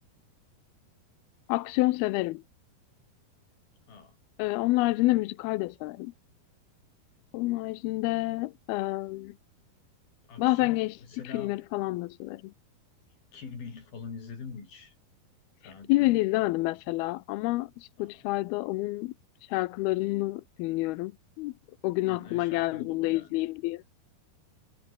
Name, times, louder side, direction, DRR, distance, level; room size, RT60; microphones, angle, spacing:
voice 1, 1.5-2.4 4.4-6.1 7.3-9.3 10.4-11.0 11.2-12.5 15.6-19.1 19.4-21.1 21.4-21.5 21.8-23.8, left 19 dB, 80° left, 2.5 m, -28 dB
voice 2, 3.9-4.2 10.3-11.6 13.3-15.0 15.6-16.1 18.0-18.2 22.1-23.4, left 5 dB, 65° left, 7.1 m, -44 dB
omnidirectional pair, 4.6 m